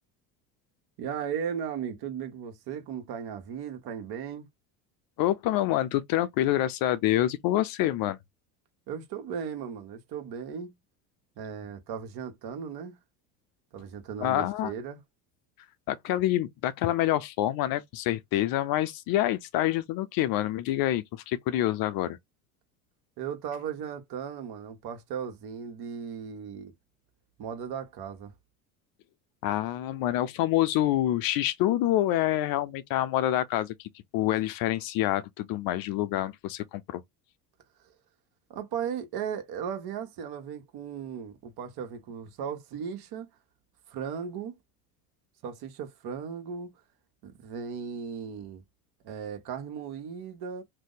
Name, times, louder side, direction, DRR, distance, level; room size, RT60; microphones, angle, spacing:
voice 1, 1.0-4.5 8.9-10.8 11.4-13.0 13.7-15.0 23.2-26.7 27.4-28.3 38.5-43.3 43.9-44.6 45.4-46.8 47.2-48.6 49.0-50.6, right 7 dB, 55° right, 1.2 m, -36 dB
voice 2, 5.2-8.2 14.2-14.7 15.9-22.2 29.4-37.0, left 14 dB, 50° left, 0.5 m, -27 dB
2.6 x 2.1 x 3.9 m
hypercardioid pair, 85°, 45 cm